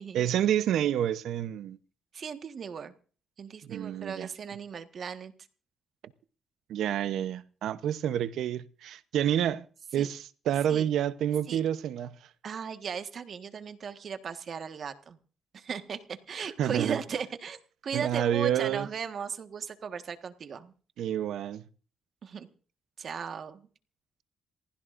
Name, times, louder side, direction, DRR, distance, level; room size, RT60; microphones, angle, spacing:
voice 1, 0.1-1.8 3.6-4.3 6.7-9.7 9.9-12.1 16.4-17.0 17.9-18.9 21.0-21.6, right 10 dB, 75° right, 0.8 m, -28 dB
voice 2, 2.1-2.9 3.4-5.3 9.9-10.1 10.7-10.9 11.5-11.6 12.4-15.2 15.5-20.7 22.2-22.5 23.0-23.7, right 6 dB, 55° right, 1.5 m, -37 dB
27.5 x 15.5 x 2.6 m
cardioid pair, 90°, 0 cm